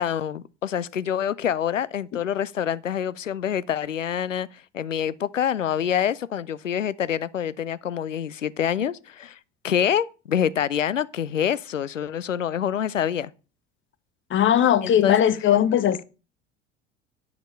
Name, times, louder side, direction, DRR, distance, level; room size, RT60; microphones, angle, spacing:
voice 1, 0.0-9.4 9.6-13.3 14.8-15.2, left 9 dB, 85° left, 0.5 m, -26 dB
voice 2, 14.3-16.0, left 10 dB, 30° left, 0.8 m, -19 dB
10.0 x 5.2 x 6.6 m
figure-of-eight pair, 65°, 37 cm